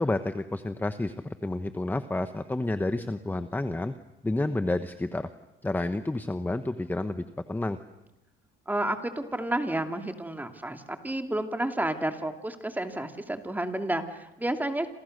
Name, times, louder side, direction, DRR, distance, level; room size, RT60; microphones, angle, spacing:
voice 1, 0.0-3.9 4.2-5.3 5.6-7.8, left 2 dB, 10° left, 10 dB, 1.1 m, -30 dB
voice 2, 8.7-14.9, right 1 dB, 10° right, 6 dB, 2.6 m, -31 dB
28.5 x 28.0 x 6.7 m, 0.91 s
cardioid pair, 120°, 20 cm